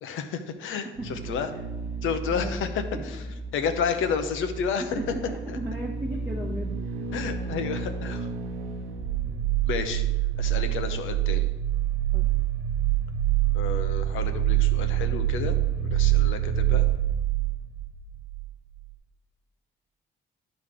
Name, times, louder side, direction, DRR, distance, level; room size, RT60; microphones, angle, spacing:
voice 1, 0.0-1.5 2.0-2.8 3.5-5.0 5.5-5.6 7.1-8.3 9.7-10.0 10.4-11.5 13.5-15.6 15.8-16.9, left 6 dB, 85° left, 8 dB, 0.8 m, -31 dB
voice 2, 0.8-1.6 2.3-2.6 2.9-3.0 4.8-7.1 10.9-11.0 12.1-12.3, right 1 dB, 10° right, -3 dB, 1.0 m, -37 dB
sound 1, 1.0-18.5 18.8-18.9, right 11 dB, 85° right, 0.8 m, -27 dB
10.5 x 4.0 x 4.9 m, 1.1 s
cardioid pair, 90°, 20 cm